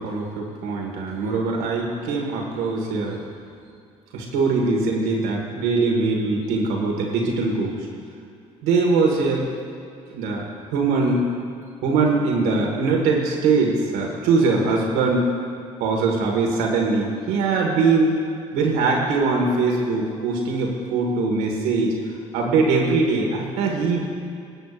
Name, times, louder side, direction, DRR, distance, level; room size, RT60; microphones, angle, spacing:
voice 1, 0.0-3.2 4.1-7.9 8.6-9.5 10.1-10.4 10.7-11.3 11.8-15.3 15.8-18.2 18.5-21.9 22.3-24.0, right 3 dB, 80° right, -1 dB, 1.7 m, -22 dB
23.0 x 8.0 x 2.5 m, 2.4 s
supercardioid pair, 60°, 16 cm